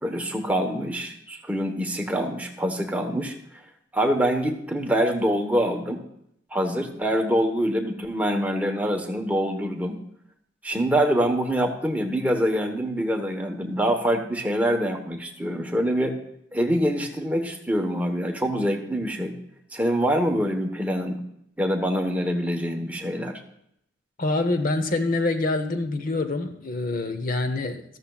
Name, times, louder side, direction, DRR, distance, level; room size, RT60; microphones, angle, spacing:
voice 1, 0.0-3.3 3.9-6.0 6.5-10.0 10.6-16.1 16.5-19.3 19.7-21.2 21.6-23.4, equal, 10° right, 3 dB, 1.1 m, -25 dB
voice 2, 24.2-27.8, left 2 dB, 50° left, 8 dB, 0.8 m, -25 dB
13.5 x 13.0 x 2.3 m, 0.75 s
head